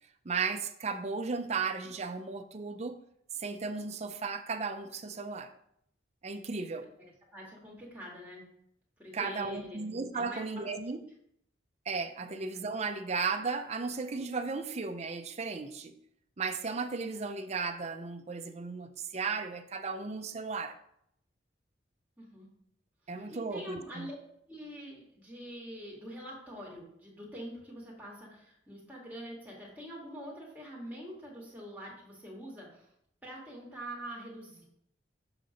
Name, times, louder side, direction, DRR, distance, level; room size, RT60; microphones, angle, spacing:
voice 1, 0.2-3.0 3.4-5.5 6.2-6.9 9.1-11.0 11.9-16.0 16.4-20.8 23.1-24.1, right 4 dB, 35° right, 0.5 m, -35 dB
voice 2, 7.3-8.5 9.0-9.8 10.2-10.7 12.2-12.3 22.2-22.5 23.3-24.2 24.5-32.9 33.2-34.6, equal, 10° right, 2.1 m, -45 dB
7.4 x 3.8 x 5.1 m
head